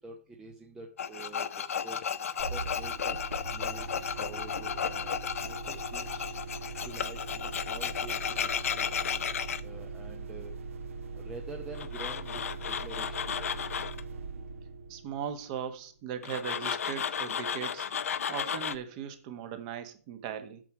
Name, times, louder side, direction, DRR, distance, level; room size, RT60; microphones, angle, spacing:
voice 1, 0.0-2.1 2.5-3.2 3.5-6.3 6.8-8.9 9.6-10.5 11.1-12.4 12.7-13.7, right 3 dB, 5° right, 1 dB, 0.8 m, -47 dB
Tools, 1.0-9.6 11.7-14.0 16.2-18.8, left 7 dB, 60° left, 0.7 m, -34 dB
sound 1, 2.4-15.9, right 4 dB, 55° right, 1.5 m, -41 dB
voice 2, 14.9-17.9 18.3-20.6, right 8 dB, 25° right, 9 dB, 1.3 m, -38 dB
9.1 x 7.1 x 5.0 m, 0.42 s
hypercardioid pair, 155°, 9 cm